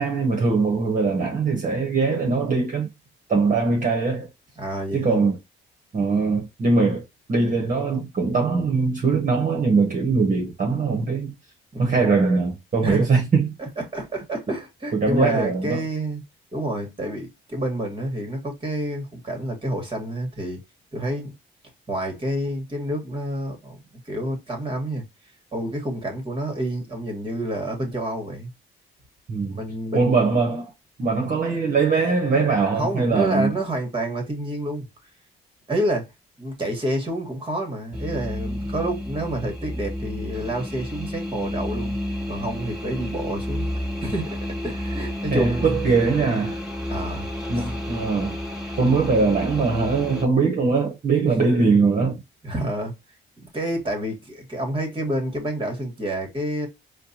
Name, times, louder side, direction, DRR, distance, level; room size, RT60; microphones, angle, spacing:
voice 1, 0.0-2.9 3.3-4.3 4.9-5.4 5.9-7.0 7.3-11.3 11.8-13.5 14.9-15.8 29.3-29.6 29.9-30.7 31.0-33.5 45.3-46.6 47.5-48.4 48.8-52.2, right 4 dB, 45° right, 1.2 m, -21 dB
voice 2, 4.6-5.2 11.7-11.9 12.8-13.1 13.6-16.2 16.5-20.6 20.9-21.3 21.9-25.0 25.5-28.5 29.5-30.3 32.8-34.8 35.7-36.1 36.4-41.9 42.3-43.7 44.0-45.8 46.9-47.3 51.2-51.4 52.4-53.0 53.5-56.7, right 1 dB, 25° right, 1.6 m, -28 dB
sound 1, 37.9-50.2, left 1 dB, 5° right, 1.5 m, -31 dB
4.4 x 2.3 x 2.7 m
cardioid pair, 90°, 20 cm